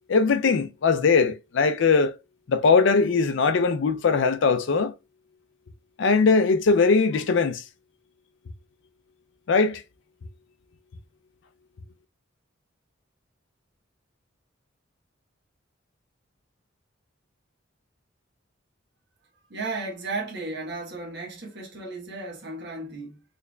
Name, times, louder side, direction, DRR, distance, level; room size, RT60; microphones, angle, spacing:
voice 1, 0.1-2.1 2.5-4.9 6.0-7.6 9.5-9.8, left 4 dB, 65° left, 0.4 m, -20 dB
voice 2, 19.5-23.2, right 3 dB, 60° right, 1.2 m, -34 dB
3.9 x 3.3 x 2.3 m
head